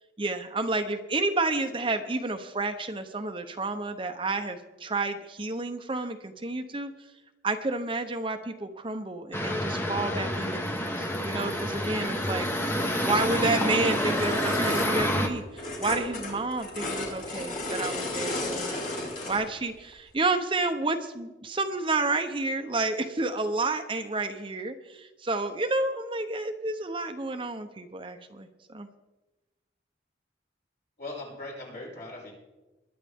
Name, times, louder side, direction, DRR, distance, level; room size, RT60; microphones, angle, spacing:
voice 1, 0.2-6.9 7.4-12.5 12.7-28.9, right 3 dB, 30° right, 7 dB, 0.8 m, -30 dB
sound 1, 9.3-15.3, equal, 10° left, 1.2 m, -28 dB
sound 2, 13.1-19.5 19.9-20.0, left 2 dB, 45° left, 3.8 m, -34 dB
voice 2, 31.0-32.3, left 2 dB, 60° left, -4 dB, 6.1 m, -40 dB
21.5 x 10.5 x 3.6 m, 1.1 s
head